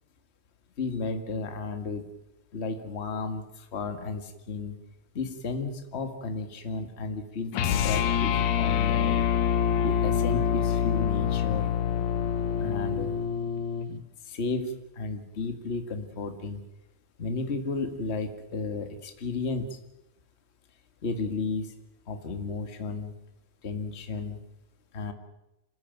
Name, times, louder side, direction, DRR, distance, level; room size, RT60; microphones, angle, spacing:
voice 1, 0.8-2.0 2.5-4.8 5.1-9.2 9.8-11.7 12.6-13.1 13.9-16.6 17.2-19.8 21.0-21.7 22.1-23.1 23.6-24.4 24.9-25.1, left 3 dB, 25° left, 6 dB, 1.4 m, -33 dB
sound 1, 7.5-13.9, left 8 dB, 85° left, 3.0 m, -26 dB
26.5 x 15.5 x 9.3 m, 0.91 s
omnidirectional pair, 4.0 m